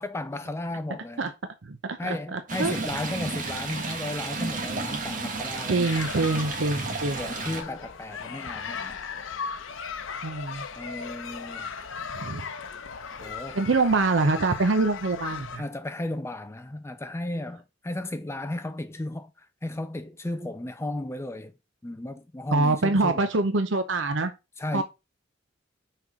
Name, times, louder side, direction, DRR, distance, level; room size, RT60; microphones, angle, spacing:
voice 1, 0.0-1.3 2.0-5.9 7.2-9.0 10.8-11.7 13.2-13.6 15.6-21.5 21.8-23.3 24.6-24.8, left 1 dB, 15° left, 0.5 m, -34 dB
voice 2, 1.6-2.7 5.7-7.2 10.2-10.6 12.2-12.4 13.5-15.6 22.5-24.3 24.7-24.8, right 3 dB, 70° right, 0.7 m, -25 dB
Stream, 2.5-7.6, right 3 dB, 45° right, 1.6 m, -32 dB
sound 1, 5.8-15.6, left 6 dB, 85° left, 0.8 m, -37 dB
5.9 x 4.5 x 4.9 m
head